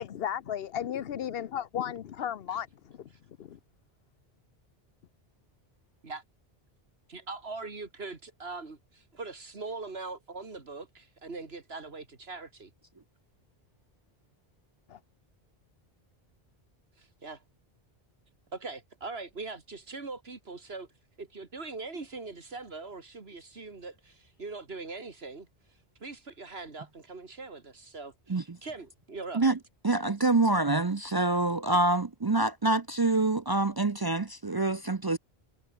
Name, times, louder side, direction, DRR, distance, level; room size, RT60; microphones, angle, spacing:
voice 1, 0.0-2.7 3.4-3.6 14.9-15.0, left 9 dB, 70° left, 1.0 m, -34 dB
voice 2, 7.1-12.7 17.0-17.4 18.5-20.9 21.2-25.5 26.0-29.4, right 3 dB, 85° right, 2.6 m, -41 dB
voice 3, 29.8-35.2, right 2 dB, 30° right, 0.4 m, -26 dB
omnidirectional pair, 1.0 m